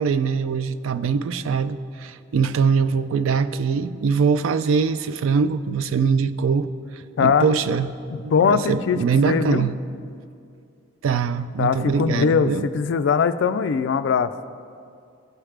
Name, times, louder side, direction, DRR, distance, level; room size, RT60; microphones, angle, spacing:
voice 1, 0.0-6.7 6.9-7.9 8.2-9.7 11.0-12.6, right 5 dB, 80° right, 13 dB, 0.3 m, -22 dB
voice 2, 7.2-7.5 8.1-9.0 9.2-9.7 11.6-14.3, left 6 dB, 65° left, 13 dB, 0.3 m, -21 dB
14.5 x 4.9 x 3.3 m, 2.4 s
head